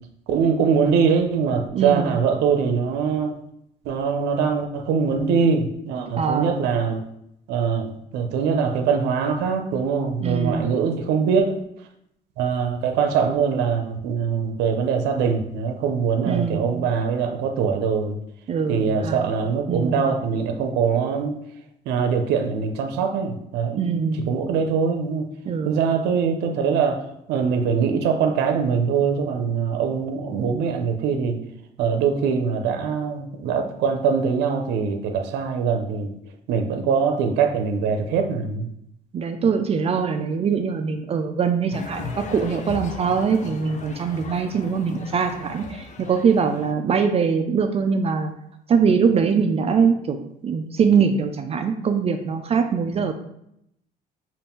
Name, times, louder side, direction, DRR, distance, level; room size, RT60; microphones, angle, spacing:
voice 1, 0.3-3.4 3.9-7.0 7.5-11.6 12.4-18.2 18.7-21.4 21.9-25.3 25.6-31.4 31.8-36.1 36.5-38.7, right 6 dB, 85° right, 5 dB, 0.6 m, -23 dB
voice 2, 1.7-2.2 6.2-6.7 10.2-10.7 16.3-16.8 18.5-19.3 19.7-20.1 23.7-24.3 25.5-25.9 39.1-48.3 48.7-50.2 50.4-53.1, right 6 dB, 35° right, 6 dB, 0.4 m, -22 dB
sound 1, 41.7-46.7, left 4 dB, 45° left, 0.6 m, -37 dB
5.4 x 2.5 x 3.5 m, 0.76 s
cardioid pair, 110°, 17 cm